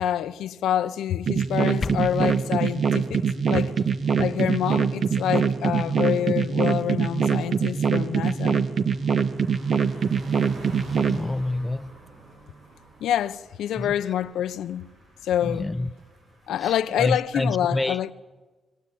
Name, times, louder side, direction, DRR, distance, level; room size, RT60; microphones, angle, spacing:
voice 1, 0.0-3.2 3.5-3.7 4.2-8.6 13.0-14.9 15.2-15.7 16.5-18.1, left 10 dB, 90° left, 0.7 m, -26 dB
sound 1, 1.3-11.2, right 6 dB, 60° right, 1.4 m, -23 dB
sound 2, 1.4-2.4, left 5 dB, 45° left, 0.7 m, -35 dB
Car passing by, 5.9-6.1 6.5-17.5, right 3 dB, 75° right, 7.5 m, -49 dB
voice 2, 11.1-11.9 13.8-13.9 15.4-15.9 16.6-18.1, left 2 dB, 15° left, 0.7 m, -28 dB
28.0 x 18.5 x 8.5 m
cardioid pair, 95°, 0 cm